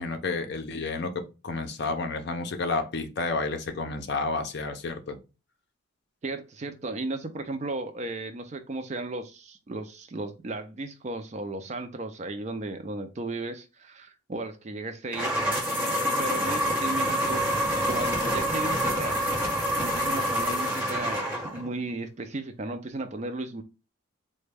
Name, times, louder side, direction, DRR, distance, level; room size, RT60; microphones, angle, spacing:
voice 1, 0.0-5.2, left 3 dB, 50° left, 0.5 m, -31 dB
voice 2, 6.2-15.3 16.2-17.4 17.8-19.2 19.8-23.6, right 2 dB, 35° right, 0.4 m, -35 dB
sound 1, 15.1-21.7, equal, 10° right, 1.0 m, -27 dB
3.9 x 2.1 x 3.3 m
head